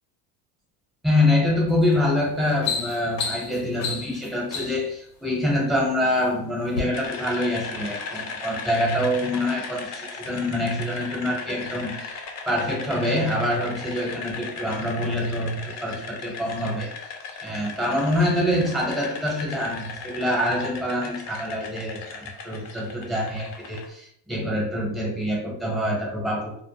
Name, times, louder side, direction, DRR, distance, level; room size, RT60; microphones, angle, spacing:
voice 1, 1.0-12.2 12.5-16.9 17.4-26.6, left 1 dB, ahead, -3 dB, 0.8 m, -25 dB
sound 1, 1.7-1.9 2.3-4.9 5.7-6.3 6.7-6.8, left 5 dB, 90° left, 0.8 m, -31 dB
sound 2, 6.9-23.9, left 5 dB, 40° left, 0.5 m, -37 dB
2.1 x 2.1 x 3.1 m, 0.67 s
supercardioid pair, 105°, 46 cm